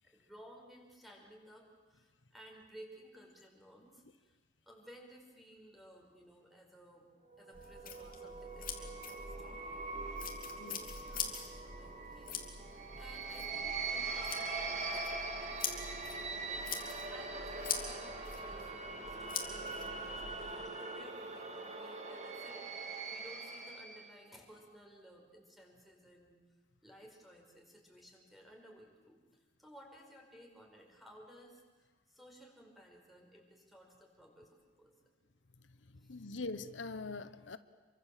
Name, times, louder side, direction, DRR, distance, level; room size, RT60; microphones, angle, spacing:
voice 1, 0.0-4.4 4.6-7.1 7.4-9.8 10.6-15.8 16.5-16.7 17.1-22.7 23.1-26.4 26.8-31.6 32.1-34.9 36.0-36.3, equal, ahead, 0 dB, 5.1 m, -57 dB
sound 1, 7.3-24.1, right 3 dB, 40° right, 2.7 m, -42 dB
sound 2, 7.5-20.5, left 7 dB, 50° left, 3.0 m, -44 dB
voice 2, 36.0-37.6, left 3 dB, 85° left, 13 dB, 1.0 m, -42 dB
27.5 x 24.0 x 7.5 m, 1.3 s
head